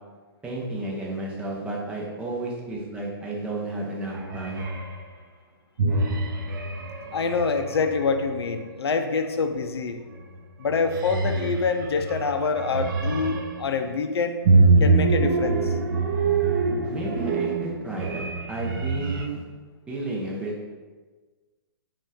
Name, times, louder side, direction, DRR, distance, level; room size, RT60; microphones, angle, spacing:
voice 1, 0.4-4.6 16.8-19.4 19.9-20.5, right 2 dB, 10° right, -4 dB, 0.6 m, -32 dB
sound 1, 4.1-5.0 5.8-8.4 10.1-10.4 10.7-13.7 14.4-19.2, right 3 dB, 55° right, 0.6 m, -24 dB
voice 2, 7.1-10.0 10.6-14.4 14.8-15.7, left 4 dB, 85° left, 7 dB, 0.4 m, -26 dB
5.0 x 2.4 x 3.4 m, 1.4 s
hypercardioid pair, 145°, 13 cm